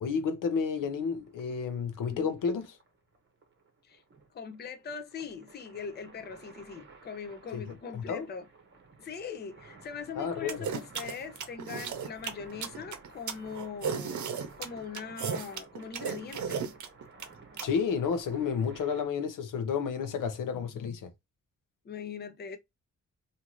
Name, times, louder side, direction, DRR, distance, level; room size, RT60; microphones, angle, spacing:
voice 1, 0.0-2.8 7.5-7.6 7.9-8.3 10.2-10.7 17.6-21.1, left 6 dB, 85° left, 0.8 m, -31 dB
sound 1, 0.7-19.1, right 4 dB, 40° right, 0.8 m, -54 dB
voice 2, 2.0-2.3 3.8-4.0 4.3-8.5 9.0-14.2 14.6-16.8 21.8-22.6, left 6 dB, 35° left, 0.5 m, -41 dB
sound 2, 10.5-17.7, right 7 dB, 65° right, 0.7 m, -34 dB
2.7 x 2.6 x 2.9 m
wide cardioid pair, 155°, 31 cm